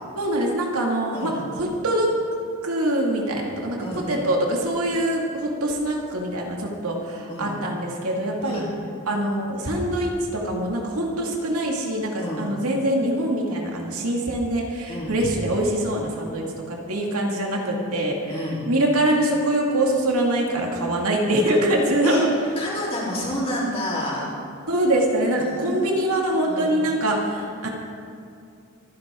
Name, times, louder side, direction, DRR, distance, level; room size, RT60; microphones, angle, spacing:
voice 1, 0.2-1.3 1.6-2.1 2.6-8.6 9.1-22.3 24.7-27.7, right 1 dB, 75° right, -1 dB, 2.4 m, -24 dB
voice 2, 12.2-12.5 14.9-15.2 18.3-18.6 22.0-22.2 22.6-24.3 25.4-26.1 26.4-26.8, left 1 dB, 25° left, -6 dB, 3.8 m, -30 dB
25.5 x 10.5 x 3.8 m, 2.5 s
head